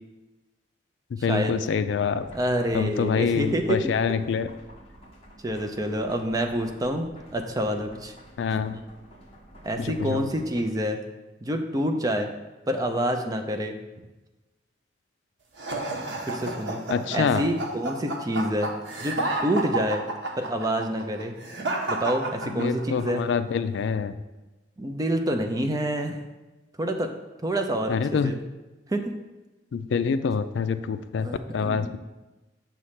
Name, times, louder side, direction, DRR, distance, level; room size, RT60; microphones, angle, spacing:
voice 1, 1.1-2.3 2.7-4.5 8.4-8.8 9.8-10.2 16.9-17.4 22.5-24.2 27.9-28.3 29.7-32.0, left 6 dB, 75° left, 12 dB, 0.3 m, -26 dB
sound 1, 2.1-10.7, equal, 35° left, 1.1 m, -49 dB
voice 2, 2.3-3.8 5.4-8.1 9.6-11.0 11.4-12.3 12.7-13.7 16.3-16.8 17.1-18.7 19.0-20.0 20.4-21.3 21.9-23.2 24.8-26.2 26.8-27.1 27.4-28.0 28.2-28.3 28.9-29.1 31.2-32.0, right 1 dB, 20° right, 4 dB, 0.5 m, -27 dB
sound 2, 15.6-23.0, right 2 dB, 75° right, 1.0 m, -31 dB
7.0 x 3.2 x 5.7 m, 1.1 s
head